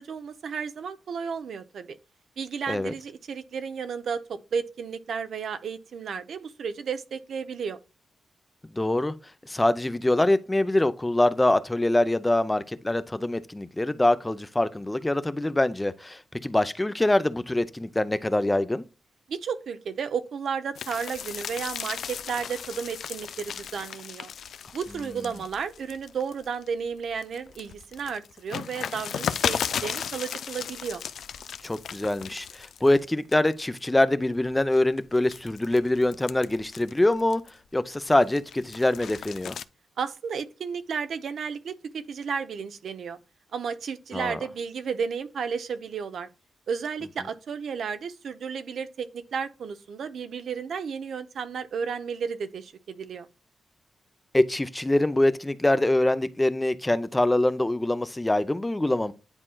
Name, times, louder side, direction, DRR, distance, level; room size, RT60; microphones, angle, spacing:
voice 1, 0.0-2.0 2.4-7.8 19.3-24.3 24.7-31.0 40.0-43.2 43.5-46.3 46.7-53.3, right 6 dB, 75° right, 0.7 m, -33 dB
voice 2, 8.7-9.1 9.4-18.8 25.2-25.3 31.6-37.4 37.7-39.6 44.1-44.4 54.3-59.1, left 1 dB, 15° left, 0.5 m, -24 dB
sound 1, 20.7-26.7 27.1-33.0 33.3-33.8 34.4-37.7 38.1-39.6, left 8 dB, 80° left, 0.4 m, -35 dB
9.8 x 4.3 x 2.3 m
cardioid pair, 95°, 0 cm